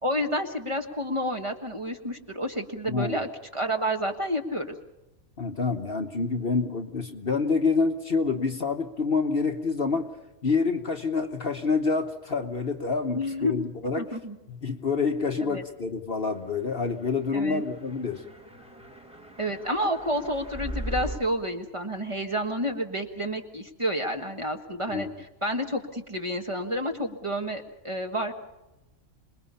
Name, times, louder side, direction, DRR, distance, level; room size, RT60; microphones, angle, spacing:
voice 1, 0.0-4.7 13.1-13.5 14.0-14.3 15.5-15.6 17.3-17.6 19.4-28.3, equal, 25° right, 3 dB, 1.5 m, -30 dB
voice 2, 2.9-3.2 5.4-10.1 10.4-14.2 14.5-18.2 24.9-25.1, left 4 dB, 45° left, 6 dB, 1.2 m, -27 dB
sound 1, 16.7-21.2, right 1 dB, 5° right, 1.6 m, -39 dB
27.0 x 20.5 x 5.6 m, 0.99 s
omnidirectional pair, 1.4 m